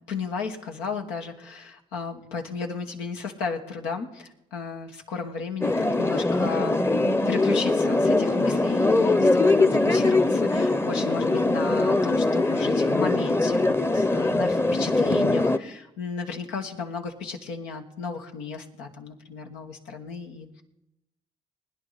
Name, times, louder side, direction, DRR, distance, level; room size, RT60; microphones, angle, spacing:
voice 1, 0.1-20.6, left 5 dB, 90° left, 3 dB, 1.5 m, -34 dB
sound 1, 5.6-15.6, left 2 dB, 15° left, 0.8 m, -22 dB
20.5 x 10.0 x 4.1 m, 0.88 s
supercardioid pair, 55°, 18 cm